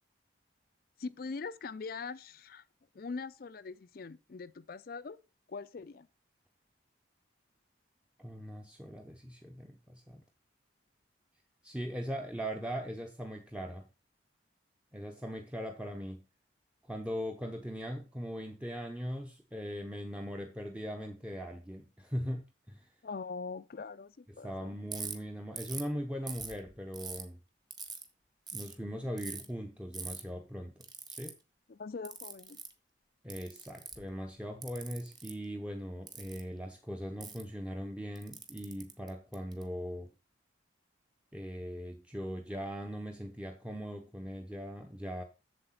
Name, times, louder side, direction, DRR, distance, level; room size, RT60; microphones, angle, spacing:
voice 1, 1.0-2.6 2.9-5.2 5.5-6.1 23.0-24.7 31.7-32.6, left 4 dB, 50° left, 0.4 m, -42 dB
voice 2, 8.2-10.2 11.6-13.9 14.9-16.2 16.9-22.9 24.3-27.4 28.5-31.4 33.2-40.1 41.3-45.2, equal, 5° right, 0.7 m, -40 dB
Ratchet pawl, 24.9-25.1 25.6-25.9 26.3-27.2 27.7-28.0 28.5-28.7 29.2-29.5 29.9-30.2 30.8-31.3 32.1-32.7 33.3-34.1 34.6-35.3 36.1-36.4 37.2-37.4 38.2-39.6, right 5 dB, 20° right, 1.4 m, -42 dB
7.7 x 7.3 x 5.7 m
head